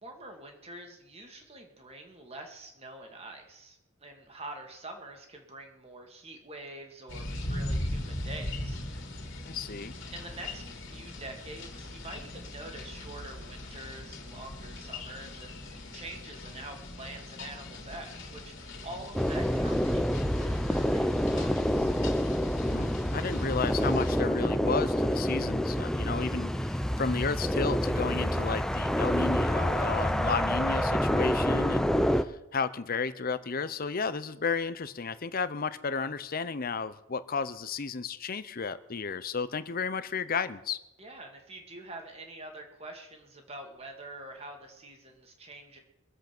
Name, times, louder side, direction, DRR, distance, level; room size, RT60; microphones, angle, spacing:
voice 1, 0.0-8.8 10.1-21.9 41.0-45.8, right 2 dB, 30° right, 2.2 m, -46 dB
sound 1, 7.1-24.2, left 1 dB, 60° left, 2.8 m, -40 dB
voice 2, 9.5-10.0 22.7-40.8, left 5 dB, 45° left, 0.7 m, -33 dB
sound 2, 19.1-32.2, equal, ahead, 0.5 m, -27 dB
22.5 x 8.0 x 6.0 m
head